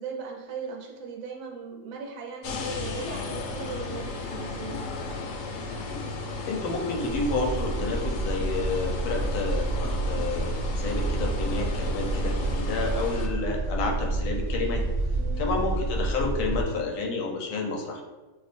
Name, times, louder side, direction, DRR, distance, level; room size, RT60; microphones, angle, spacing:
voice 1, 0.0-4.8 15.1-15.5, right 5 dB, 75° right, 0 dB, 1.5 m, -38 dB
sound 1, 2.4-13.3, left 3 dB, 70° left, 1.1 m, -35 dB
voice 2, 6.4-14.8 15.4-18.0, left 3 dB, 90° left, 1 dB, 1.6 m, -30 dB
sound 2, 7.0-16.6, right 2 dB, 5° left, 0.4 m, -29 dB
6.3 x 2.6 x 2.5 m, 1.2 s
omnidirectional pair, 2.2 m